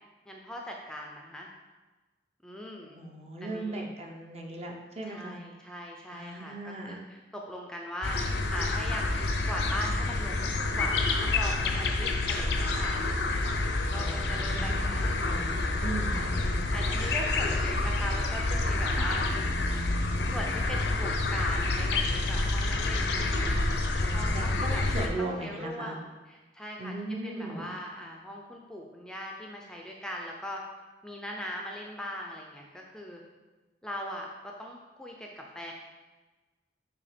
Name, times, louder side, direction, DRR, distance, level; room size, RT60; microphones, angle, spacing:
voice 1, 0.3-1.5 2.4-3.0 3.4-3.9 5.0-8.2 8.5-9.1 9.5-13.0 13.9-15.4 16.1-16.3 16.7-19.2 20.3-23.2 24.1-24.8 25.2-26.9 27.2-30.6 31.0-33.2 33.8-35.7, equal, 5° left, 0 dB, 0.5 m, -40 dB
voice 2, 2.9-5.4 6.1-7.0 13.9-16.6 19.0-19.2 24.0-26.0 26.8-27.7, right 2 dB, 35° right, 1 dB, 0.7 m, -38 dB
sound 1, 8.0-25.1, left 2 dB, 75° left, 0.6 m, -28 dB
6.8 x 2.9 x 5.0 m, 1.2 s
head